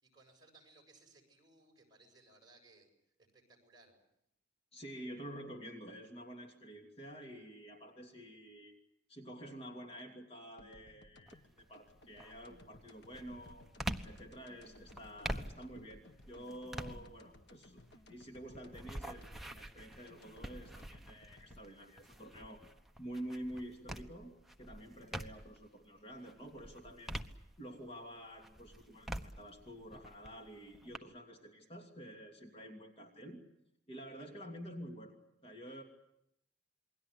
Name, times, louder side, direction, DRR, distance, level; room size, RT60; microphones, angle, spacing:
voice 1, 0.0-2.9 3.3-4.0, right 2 dB, 20° right, 2 dB, 7.3 m, -63 dB
voice 2, 4.7-8.7 9.1-13.7 14.0-17.8 18.1-22.6 23.0-24.3 24.6-27.2 27.6-33.4 33.9-35.2 35.4-35.8, equal, 30° left, 3 dB, 2.8 m, -49 dB
sound 1, 10.6-23.4, left 1 dB, 65° left, 1.8 m, -60 dB
sound 2, 11.3-11.7 12.1-25.7 26.1-28.0 28.4-31.0, right 1 dB, ahead, 1.1 m, -46 dB
28.5 x 22.0 x 8.2 m, 0.79 s
head